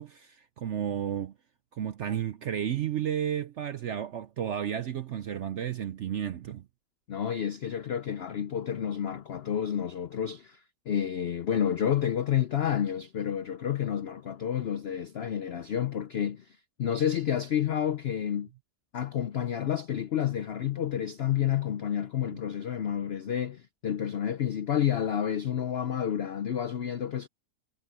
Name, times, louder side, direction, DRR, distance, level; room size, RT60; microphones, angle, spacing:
voice 1, 0.0-1.3 1.7-6.6, right 9 dB, 65° right, 0.7 m, -32 dB
voice 2, 7.1-10.6 10.9-18.5 18.9-27.3, left 9 dB, 85° left, 0.5 m, -30 dB
omnidirectional pair, 1.8 m